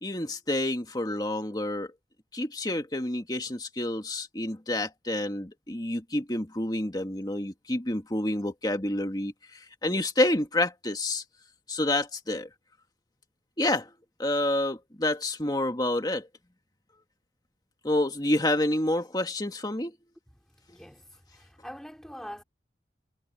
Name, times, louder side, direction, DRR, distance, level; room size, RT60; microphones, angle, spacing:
voice 1, 0.0-1.9 2.3-11.2 11.7-12.5 13.6-13.9 14.2-16.3 17.8-19.9, left 1 dB, 20° left, 2.0 m, -28 dB
voice 2, 20.7-22.4, equal, 5° left, 4.6 m, -44 dB
head